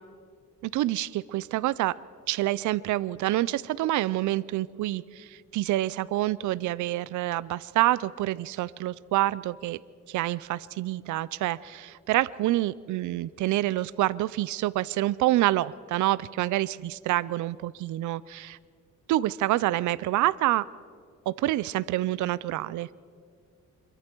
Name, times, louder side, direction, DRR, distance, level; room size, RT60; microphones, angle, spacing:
voice 1, 0.6-2.0 2.3-5.3 5.5-9.8 10.1-18.6 19.1-20.6 21.3-22.9, right 15 dB, 75° right, 20 dB, 0.5 m, -27 dB
26.0 x 23.0 x 4.6 m, 2.1 s
cardioid pair, 90°, 30 cm